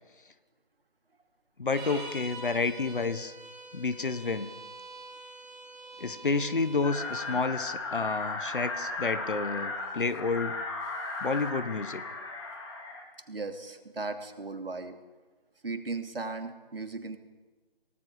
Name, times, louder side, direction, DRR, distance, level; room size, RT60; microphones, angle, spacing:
voice 1, 1.6-3.3 3.7-4.5 6.0-10.6 11.2-12.0, left 4 dB, 60° left, 13 dB, 1.5 m, -30 dB
sound 1, 1.7-7.4, right 2 dB, 5° right, 1.2 m, -45 dB
sound 2, 6.8-13.0, left 3 dB, 30° left, 3.4 m, -36 dB
voice 2, 13.3-14.9 15.6-17.2, right 3 dB, 70° right, 5 dB, 2.9 m, -37 dB
28.5 x 18.5 x 5.0 m, 1.3 s
figure-of-eight pair, 170°, 30 cm